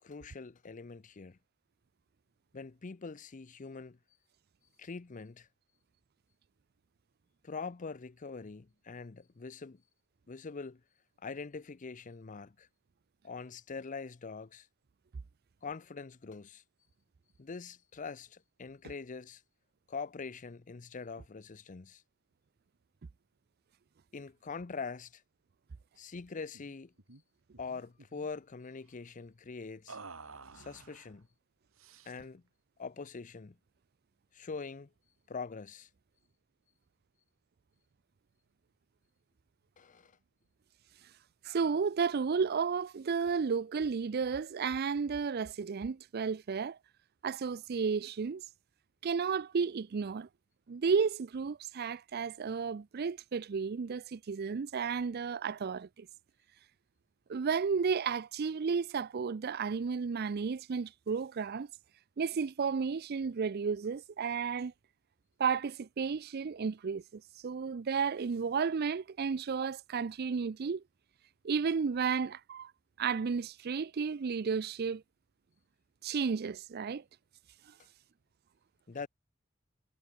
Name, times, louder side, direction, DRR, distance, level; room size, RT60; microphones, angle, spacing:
voice 1, 0.0-1.4 2.5-4.0 4.8-5.5 7.4-9.8 10.3-10.8 11.2-12.7 13.2-14.7 15.6-16.6 17.4-19.4 19.9-22.0 24.1-25.2 26.0-26.9 27.6-30.0 30.5-31.3 32.0-32.4 32.8-33.6 34.3-34.9 35.3-35.9 39.8-40.1 78.9-79.1, left 4 dB, 40° left, 0.6 m, -43 dB
sound 1, 26.5-26.7 27.0-27.2 27.5-28.3 29.9-31.1 31.8-32.4, right 4 dB, 80° right, 3.2 m, -51 dB
voice 2, 41.4-46.8 47.2-48.4 49.0-50.3 50.7-56.1 57.3-61.7 62.2-64.7 65.4-70.8 71.4-72.7 73.0-75.0 76.0-77.0, right 5 dB, 50° right, 0.4 m, -33 dB
head